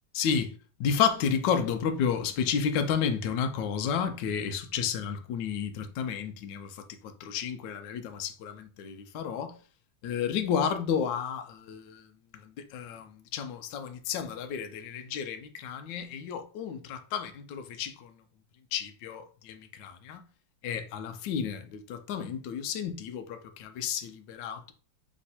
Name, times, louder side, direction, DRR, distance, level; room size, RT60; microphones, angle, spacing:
voice 1, 0.1-0.5 0.8-6.8 7.2-9.5 10.0-12.1 12.4-18.1 18.7-20.2 20.6-24.7, left 7 dB, 75° left, 1.3 m, -31 dB
3.5 x 3.1 x 4.1 m
omnidirectional pair, 2.1 m